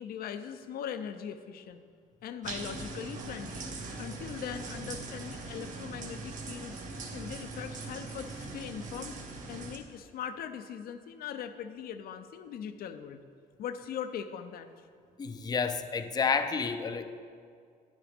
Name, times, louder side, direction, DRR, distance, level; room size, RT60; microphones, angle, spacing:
voice 1, 0.0-1.8 2.2-3.7 4.0-6.8 7.1-9.2 9.5-13.2 13.6-14.7, left 8 dB, 65° left, 10 dB, 0.7 m, -40 dB
sound 1, 2.4-9.8, right 3 dB, 50° right, 1.4 m, -41 dB
voice 2, 15.2-17.2, left 5 dB, 25° left, 9 dB, 0.5 m, -30 dB
10.5 x 9.9 x 3.5 m, 2.2 s
cardioid pair, 110°, 17 cm